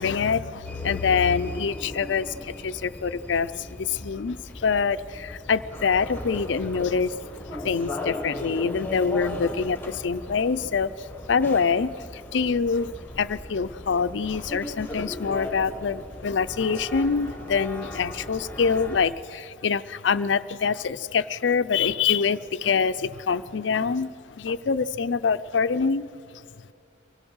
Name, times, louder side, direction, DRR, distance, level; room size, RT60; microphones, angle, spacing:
voice 1, 0.0-7.1 7.5-26.1, left 5 dB, 80° left, 15 dB, 0.5 m, -25 dB
sound 1, 0.6-19.1, left 1 dB, 10° left, 1.3 m, -37 dB
24.5 x 17.5 x 6.3 m, 2.5 s
head